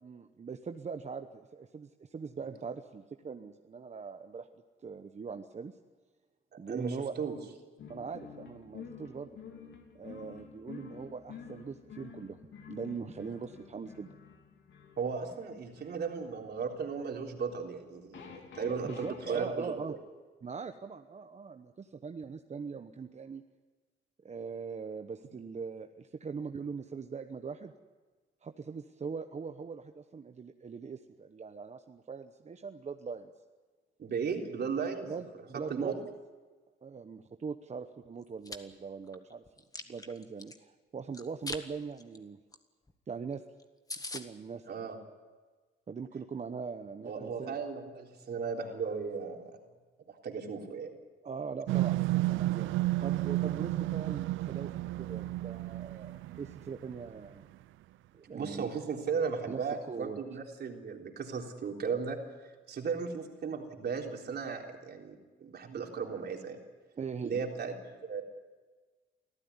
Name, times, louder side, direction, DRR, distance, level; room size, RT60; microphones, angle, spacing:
voice 1, 0.0-4.5 4.8-5.8 6.6-7.2 7.9-9.4 9.9-12.4 12.7-14.2 18.8-20.0 20.4-23.4 24.2-27.7 28.4-33.3 35.0-36.1 36.8-39.4 39.9-42.4 43.1-43.4 44.1-44.7 45.9-47.6 51.2-52.8 53.0-57.5 58.1-58.7 59.5-60.2 67.0-67.4, right 5 dB, 35° right, 6 dB, 1.1 m, -41 dB
voice 2, 6.7-7.4 15.0-20.0 34.0-35.1 35.5-36.0 44.7-45.0 47.1-49.5 50.1-50.9 58.3-62.2 62.7-66.6 67.2-67.7 68.0-68.2, right 5 dB, 55° right, 2 dB, 3.7 m, -36 dB
sound 1, 7.8-19.5, left 7 dB, 70° left, 3.3 m, -50 dB
Chewing mastication, 38.2-38.6 39.1-40.6 41.1-41.6 42.0-42.2 42.5-42.6 42.9-43.0 43.3-43.4 43.6-43.7 43.9-44.2, left 2 dB, 20° left, 1.7 m, -41 dB
sound 2, 51.7-57.0, right 16 dB, 80° right, 0.6 m, -32 dB
25.0 x 14.5 x 9.8 m, 1.3 s
cardioid pair, 90°, 20 cm